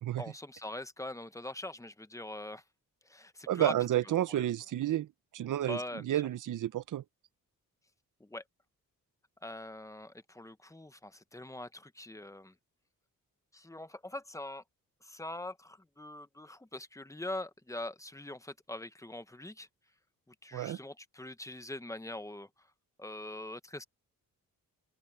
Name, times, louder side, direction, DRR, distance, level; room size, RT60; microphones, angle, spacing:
voice 1, 0.2-2.6 3.0-3.7 4.0-4.5 5.7-6.1 8.2-8.4 9.4-12.5 13.5-14.6 15.0-19.7 20.3-22.5 23.0-23.8, left 1 dB, 10° left, 0.9 m, -43 dB
voice 2, 3.5-5.1 5.3-7.0 20.5-20.8, right 12 dB, 65° right, 0.6 m, -31 dB
open air
cardioid pair, 100°, 34 cm